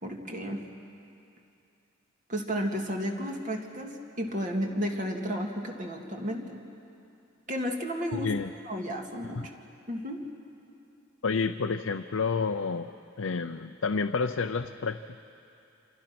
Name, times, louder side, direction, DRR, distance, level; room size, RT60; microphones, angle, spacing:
voice 1, 0.0-0.7 2.3-6.6 7.5-8.3 8.6-9.5 9.9-10.2, equal, 40° right, 2 dB, 2.2 m, -33 dB
voice 2, 8.1-8.5 9.4-9.5 11.2-12.9 13.2-15.2, left 4 dB, 85° left, 6 dB, 0.6 m, -29 dB
27.5 x 26.5 x 6.0 m, 2.7 s
head